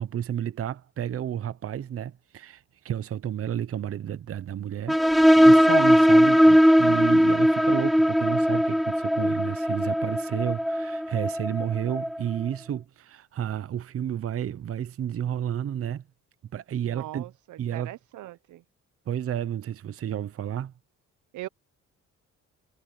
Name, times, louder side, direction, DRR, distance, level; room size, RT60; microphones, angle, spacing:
voice 1, 0.0-16.0 16.5-17.3 17.6-17.9 19.1-20.7, right 10 dB, 50° right, 0.8 m, -31 dB
sound 1, 4.9-12.2, equal, ahead, 0.3 m, -19 dB
voice 2, 16.8-18.6 21.3-21.5, right 16 dB, 80° right, 0.9 m, -40 dB
cardioid pair, 90°, 30 cm